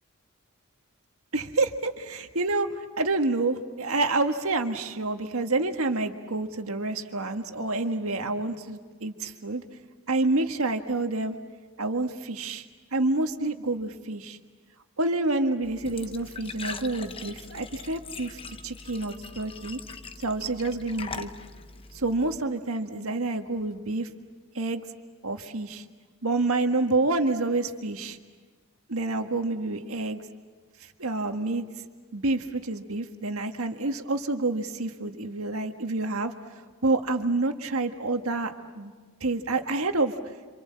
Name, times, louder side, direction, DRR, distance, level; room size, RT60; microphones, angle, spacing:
voice 1, 1.3-2.7 3.0-9.6 10.1-11.4 11.8-12.7 12.9-14.4 15.0-19.8 20.2-21.3 21.9-24.1 24.5-24.8 25.2-25.8 26.2-28.2 28.9-30.2 31.0-31.6 32.1-36.3 36.8-38.9 39.2-40.1, right 2 dB, 80° right, 6 dB, 1.7 m, -28 dB
Glass / Trickle dribble / Fill (with liquid), 15.6-22.4, left 4 dB, 25° left, 0.8 m, -41 dB
27.5 x 27.0 x 7.6 m, 1.4 s
head